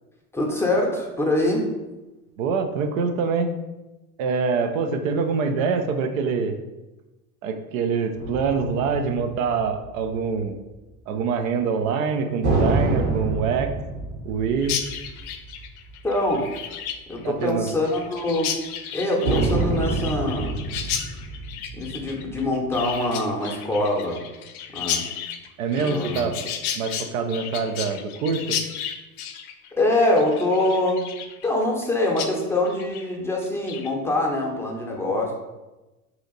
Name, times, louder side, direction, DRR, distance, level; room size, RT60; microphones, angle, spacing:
voice 1, 0.3-1.7 16.0-16.5 17.1-18.6 18.9-20.6 21.7-24.2 24.7-25.1 25.8-26.3 29.8-31.1 31.4-35.3, left 1 dB, 5° left, -2 dB, 0.7 m, -24 dB
voice 2, 2.4-3.5 4.2-6.6 7.4-10.6 11.1-13.7 14.2-14.8 17.2-17.7 25.6-28.6, right 5 dB, 65° right, 7 dB, 0.5 m, -25 dB
sound 1, 8.2-10.1 12.4-16.2 16.5-16.6 19.2-22.9, right 3 dB, 40° right, 0.8 m, -27 dB
Chirp tweet, 14.6-31.9 32.2-32.3 32.7-33.1 33.4-33.9, left 8 dB, 70° left, 0.5 m, -33 dB
2.8 x 2.4 x 3.9 m, 1.1 s
hypercardioid pair, 80°, 45 cm